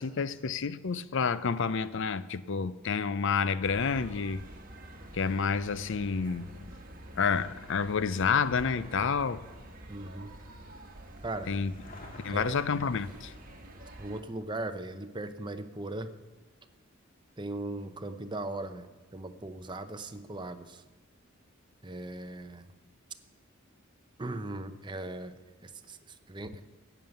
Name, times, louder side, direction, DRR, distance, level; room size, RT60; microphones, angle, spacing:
voice 1, 0.0-4.4 5.1-6.5 7.2-9.4 11.5-11.7 12.2-13.3, left 5 dB, 60° left, 0.5 m, -29 dB
sound 1, 3.6-14.2, right 1 dB, 45° right, 1.4 m, -48 dB
sound 2, 8.5-20.6 20.9-21.0 21.8-21.9 22.1-22.2 22.5-22.6, left 2 dB, 40° left, 1.8 m, -56 dB
voice 2, 9.9-10.3 11.2-11.5 12.3-12.5 14.0-16.1 17.4-20.8 21.8-22.7 24.2-25.3 25.6-26.6, right 2 dB, 20° right, 0.7 m, -38 dB
14.5 x 9.3 x 6.7 m
head